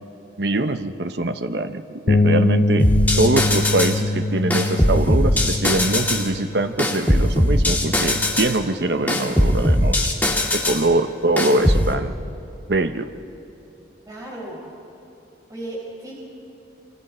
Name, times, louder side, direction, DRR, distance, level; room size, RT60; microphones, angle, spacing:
voice 1, 0.4-2.9 3.2-10.1 10.5-12.1 12.7-13.1, right 2 dB, 60° right, 8 dB, 0.9 m, -23 dB
Bass guitar, 2.1-8.3, left 2 dB, 35° left, 0.4 m, -24 dB
sound 1, 2.8-4.0 4.5-6.3 6.8-8.6 9.1-10.8 11.4-11.9, left 1 dB, 10° left, 1.9 m, -19 dB
voice 2, 14.1-14.6 15.5-16.1, right 1 dB, 20° right, -4 dB, 4.8 m, -34 dB
27.0 x 25.5 x 4.4 m, 3.0 s
head